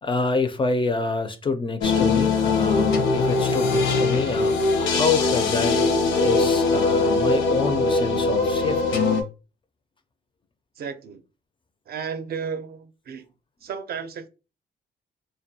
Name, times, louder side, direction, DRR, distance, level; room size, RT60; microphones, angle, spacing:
voice 1, 0.0-5.8 6.2-9.0, left 4 dB, 25° left, 0.4 m, -26 dB
sound 1, 1.8-9.2, left 3 dB, 75° left, 0.6 m, -21 dB
voice 2, 10.8-11.2 11.9-13.2 13.6-14.3, right 6 dB, 50° right, 0.5 m, -33 dB
2.2 x 2.2 x 2.7 m
cardioid pair, 90°, 20 cm